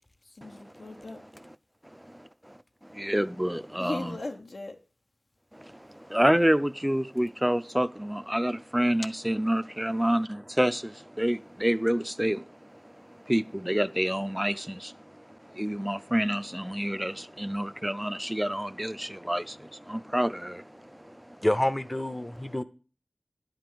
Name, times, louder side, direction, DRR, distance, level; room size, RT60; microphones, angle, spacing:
voice 1, 0.2-1.3 3.8-4.8, left 2 dB, 85° left, 1.1 m, -38 dB
voice 2, 1.9-2.6 2.8-4.1 5.5-21.4, equal, 10° right, 0.5 m, -28 dB
voice 3, 21.4-22.6, left 1 dB, 25° left, 0.7 m, -27 dB
10.5 x 5.2 x 7.6 m
wide cardioid pair, 50°, 0 cm